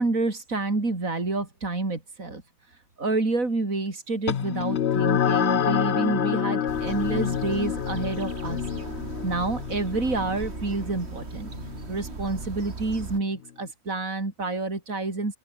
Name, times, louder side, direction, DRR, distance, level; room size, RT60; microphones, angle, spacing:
voice 1, 0.0-2.4 3.0-8.6 9.2-11.5 11.9-15.4, right 3 dB, 80° right, 4.5 m, -28 dB
sound 1, 4.3-13.1, left 9 dB, 55° left, 1.0 m, -28 dB
sound 2, 6.7-13.2, right 4 dB, 50° right, 2.2 m, -38 dB
open air
omnidirectional pair, 1.4 m